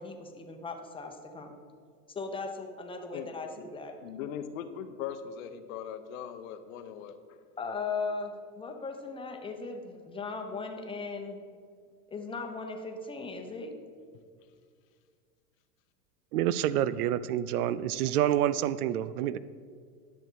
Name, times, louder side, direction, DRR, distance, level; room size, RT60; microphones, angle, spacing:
voice 1, 0.0-1.5 2.1-4.0 7.6-11.4 12.1-13.7, left 4 dB, 10° left, 4 dB, 0.9 m, -38 dB
voice 2, 4.0-7.2, left 8 dB, 55° left, 9 dB, 0.9 m, -39 dB
voice 3, 16.3-19.4, right 11 dB, 65° right, 16 dB, 0.5 m, -28 dB
11.0 x 6.4 x 4.6 m, 2.1 s
hypercardioid pair, 115°, 48 cm